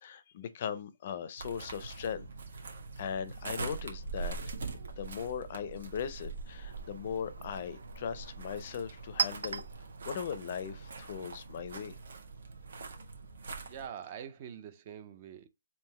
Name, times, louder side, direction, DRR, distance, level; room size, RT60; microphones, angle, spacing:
voice 1, 0.0-2.3 2.6-2.7 3.0-4.4 5.0-9.6 10.0-12.0, left 7 dB, 40° left, 0.5 m, -39 dB
sound 1, 1.4-13.9, right 4 dB, 65° right, 1.2 m, -43 dB
Chink clink, 6.3-11.8, right 6 dB, 80° right, 0.6 m, -41 dB
voice 2, 13.6-15.5, right 8 dB, 30° right, 0.5 m, -44 dB
3.7 x 2.7 x 4.2 m
hypercardioid pair, 165°, 0 cm